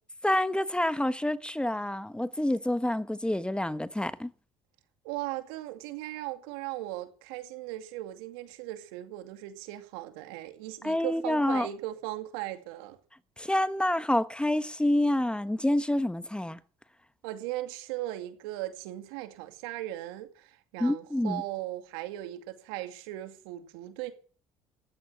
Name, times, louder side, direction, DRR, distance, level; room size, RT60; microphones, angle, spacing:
voice 1, 0.2-4.3 10.8-11.7 13.4-16.6 20.8-21.4, left 1 dB, 10° left, 1.2 m, -27 dB
voice 2, 5.0-13.0 17.2-24.1, right 15 dB, 85° right, 2.3 m, -38 dB
15.0 x 12.5 x 7.3 m
hypercardioid pair, 60°, 13 cm